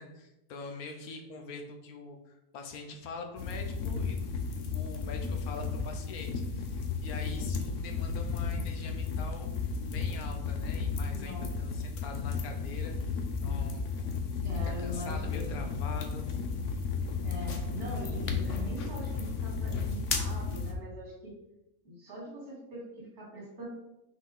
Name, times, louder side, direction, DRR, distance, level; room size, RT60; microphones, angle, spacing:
voice 1, 0.0-4.3 4.7-12.9 13.4-13.9 14.6-16.3, left 3 dB, 80° left, 4 dB, 1.3 m, -44 dB
sound 1, 3.4-20.7, left 5 dB, 60° left, 1.0 m, -33 dB
voice 2, 11.1-11.5 14.4-15.7 17.2-21.4 21.8-23.7, equal, 85° right, -5 dB, 2.9 m, -42 dB
6.0 x 4.1 x 3.9 m, 0.92 s
omnidirectional pair, 1.6 m